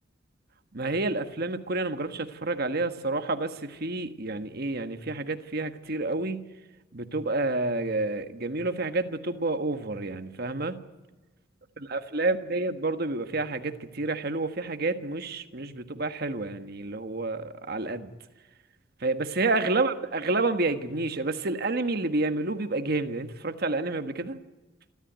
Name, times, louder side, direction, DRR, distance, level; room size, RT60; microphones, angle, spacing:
voice 1, 0.7-6.5 6.9-10.8 11.8-18.1 19.0-24.4, right 2 dB, 55° right, 8 dB, 1.5 m, -29 dB
27.0 x 13.5 x 9.3 m, 1.2 s
head